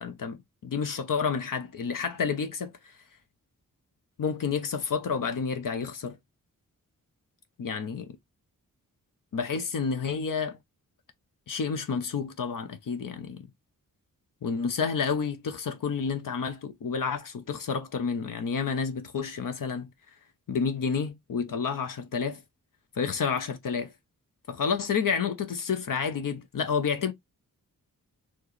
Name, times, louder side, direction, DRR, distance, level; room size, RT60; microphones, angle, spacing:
voice 1, 0.0-2.9 4.2-6.2 7.6-8.2 9.3-10.6 11.5-13.5 14.4-19.9 20.5-22.4 23.0-23.9 24.5-27.1, left 6 dB, 65° left, 0.8 m, -30 dB
4.4 x 2.9 x 3.1 m
wide cardioid pair, 125°, 34 cm